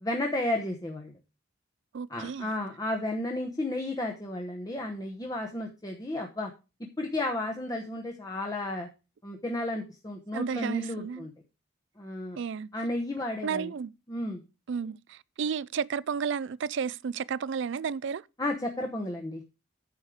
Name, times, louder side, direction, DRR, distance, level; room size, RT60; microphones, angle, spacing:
voice 1, 0.0-1.2 2.1-6.5 7.0-8.9 9.2-11.3 12.0-12.4 12.7-13.7 14.1-14.4 18.4-19.4, left 1 dB, 20° left, 1.0 m, -33 dB
voice 2, 1.9-2.5 10.3-11.3 12.4-12.7 13.4-13.9 14.7-18.2, right 6 dB, 60° right, 0.4 m, -32 dB
9.6 x 6.5 x 4.8 m
head